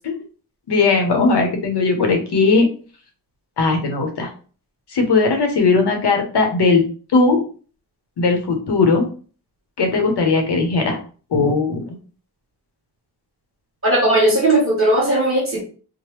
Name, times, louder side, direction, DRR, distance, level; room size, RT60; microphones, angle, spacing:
voice 1, 0.7-2.7 3.6-4.3 4.9-6.8 7.1-7.4 8.2-9.1 9.8-11.0 11.3-11.9, left 4 dB, 75° left, 4 dB, 0.8 m, -18 dB
voice 2, 13.8-15.6, right 1 dB, 35° right, -2 dB, 1.4 m, -17 dB
3.2 x 2.1 x 3.0 m, 0.39 s
cardioid pair, 65°, 40 cm